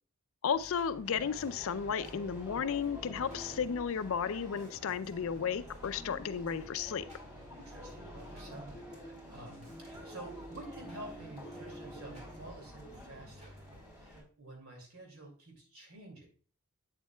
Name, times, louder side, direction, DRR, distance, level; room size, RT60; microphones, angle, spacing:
voice 1, 0.4-7.1, left 7 dB, 65° left, 0.4 m, -34 dB
sound 1, 0.5-8.8 9.3-13.9, equal, 30° right, 2.2 m, -55 dB
sound 2, 1.0-14.2, equal, 15° right, 3.4 m, -50 dB
sound 3, 3.0-12.4, equal, 5° left, 1.4 m, -53 dB
voice 2, 7.5-13.6 14.0-16.3, right 2 dB, 70° right, 2.4 m, -50 dB
8.2 x 7.2 x 2.3 m
head